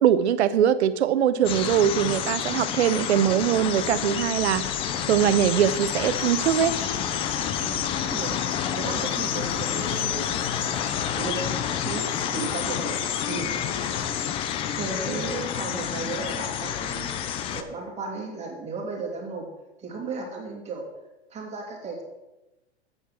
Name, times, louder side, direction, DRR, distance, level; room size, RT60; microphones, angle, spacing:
voice 1, 0.0-4.6 5.1-6.7, right 9 dB, 75° right, 14 dB, 0.8 m, -22 dB
sound 1, 1.4-17.6, left 9 dB, 15° left, 0.4 m, -29 dB
sound 2, 3.8-14.2, left 2 dB, 35° left, 2.8 m, -42 dB
Crowd, 4.7-13.5, left 2 dB, 55° left, 3.4 m, -49 dB
voice 2, 7.6-8.4 8.7-10.5 11.1-13.0 13.3-13.6 14.7-19.5 19.8-20.8 21.3-22.0, right 4 dB, 20° right, 0 dB, 2.5 m, -35 dB
8.2 x 7.2 x 6.0 m, 1.0 s
hypercardioid pair, 125°, 34 cm